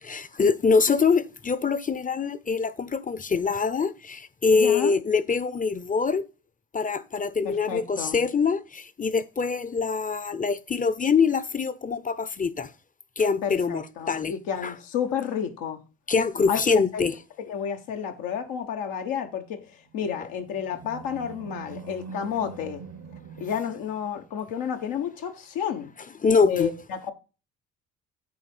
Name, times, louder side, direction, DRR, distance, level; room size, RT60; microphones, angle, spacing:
voice 1, 0.0-6.2 6.7-12.7 13.2-14.3 14.6-14.7 16.1-17.2 26.2-26.7, left 5 dB, 25° left, 0.7 m, -24 dB
voice 2, 4.5-5.0 7.4-8.2 13.4-15.8 16.5-16.6 16.9-17.0 17.5-19.6 19.9-22.8 23.4-25.9 26.4-27.1, left 8 dB, 80° left, 1.3 m, -31 dB
Animal, 19.9-24.5, right 6 dB, 70° right, 1.1 m, -43 dB
8.5 x 3.6 x 6.1 m
hypercardioid pair, 50°, 33 cm